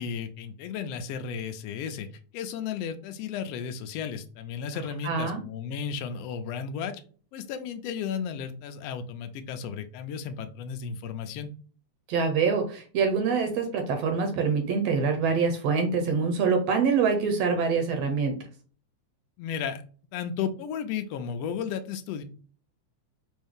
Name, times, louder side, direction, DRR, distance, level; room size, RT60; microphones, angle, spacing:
voice 1, 0.0-2.1 2.3-7.0 7.3-11.5 19.4-19.8 20.1-22.2, left 7 dB, 80° left, 7 dB, 1.4 m, -34 dB
voice 2, 5.0-5.4 12.1-18.4, right 5 dB, 70° right, 5 dB, 1.7 m, -25 dB
5.4 x 2.7 x 3.5 m, 0.41 s
omnidirectional pair, 3.4 m